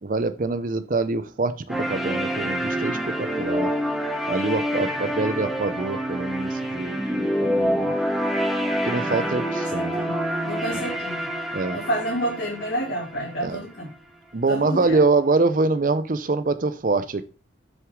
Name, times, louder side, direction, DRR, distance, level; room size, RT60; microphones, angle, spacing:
voice 1, 0.0-3.7 4.3-7.9 8.8-10.0 10.7-10.9 11.5-11.8 13.4-13.7 14.3-17.2, right 3 dB, 45° right, 12 dB, 0.5 m, -25 dB
sound 1, 1.7-13.7, equal, ahead, 1.3 m, -27 dB
voice 2, 9.7-10.2 10.4-11.2 11.7-13.9 14.5-15.0, right 1 dB, 55° left, -5 dB, 2.6 m, -29 dB
7.8 x 6.4 x 3.6 m, 0.36 s
head